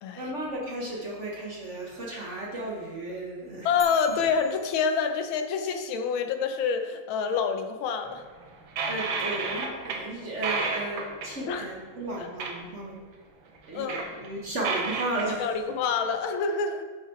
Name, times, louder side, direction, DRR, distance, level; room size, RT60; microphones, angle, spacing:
voice 1, 0.1-3.7 4.1-4.2 8.9-13.0 13.7-15.5, right 1 dB, 45° right, -3 dB, 1.1 m, -34 dB
voice 2, 3.6-8.2 11.5-11.6 12.2-12.3 13.7-14.1 15.4-16.8, left 6 dB, 90° left, 6 dB, 1.5 m, -27 dB
sound 1, 3.8-5.5, equal, ahead, 1.1 m, -46 dB
sound 2, 8.3-10.0 10.3-11.4 12.4-12.6 12.9-13.0 13.6-15.3, right 4 dB, 80° right, 1.7 m, -31 dB
10.5 x 4.0 x 4.2 m, 1.4 s
omnidirectional pair, 2.2 m